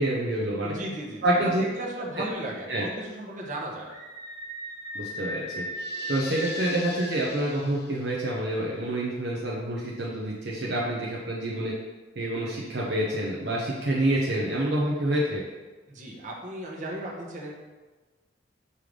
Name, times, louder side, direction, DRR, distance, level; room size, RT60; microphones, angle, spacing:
voice 1, 0.0-0.7 1.2-1.6 2.2-2.3 2.7-2.8 4.9-5.6 6.1-11.7 12.2-15.4, right 1 dB, 60° right, -4 dB, 0.8 m, -27 dB
voice 2, 0.6-3.9 15.9-17.5, right 1 dB, 40° right, -3 dB, 1.1 m, -35 dB
Screaming, 3.8-7.2, equal, 15° right, 1.3 m, -36 dB
sound 1, 5.7-8.3, left 6 dB, 55° left, 0.5 m, -43 dB
5.5 x 3.3 x 5.2 m, 1.2 s
head